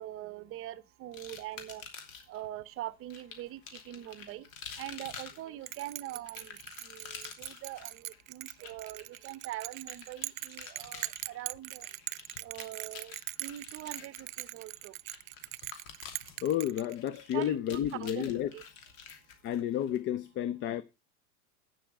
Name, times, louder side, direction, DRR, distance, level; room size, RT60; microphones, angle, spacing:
voice 1, 0.0-1.8 2.3-4.5 4.8-11.9 12.4-13.1 13.4-14.9 17.3-18.6, right 14 dB, 30° right, 0.8 m, -43 dB
sound 1, 1.1-2.4 3.1-20.0, left 6 dB, 70° left, 2.9 m, -49 dB
Bell, 5.7-17.3, right 18 dB, 75° right, 0.5 m, -41 dB
voice 2, 16.4-18.5 19.4-20.8, left 10 dB, 30° left, 0.5 m, -31 dB
9.1 x 6.9 x 6.3 m
hypercardioid pair, 120°, 41 cm